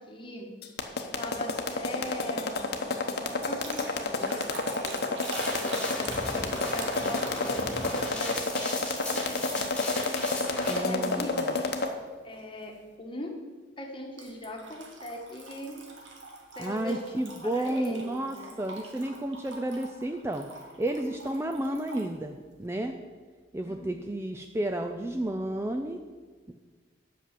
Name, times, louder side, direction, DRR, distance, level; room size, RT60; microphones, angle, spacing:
voice 1, 0.1-0.5 1.1-2.7 3.2-5.8 6.6-9.6 10.7-11.5 12.2-13.4 13.8-15.9 16.6-18.5 23.7-24.1, left 1 dB, 25° left, 1 dB, 1.3 m, -40 dB
sound 1, 0.6-11.9, left 3 dB, 50° left, 0.9 m, -29 dB
sound 2, 3.4-10.4 11.0-11.9 12.3-12.6 14.2-22.1, right 3 dB, 70° right, 1.5 m, -45 dB
sound 3, 5.2-10.8, left 1 dB, 5° left, 1.8 m, -36 dB
voice 2, 10.7-11.5 16.6-20.5 20.8-23.0 23.5-26.0 26.5-26.6, right 1 dB, 15° right, 5 dB, 0.3 m, -32 dB
8.3 x 6.1 x 7.5 m, 1.5 s
head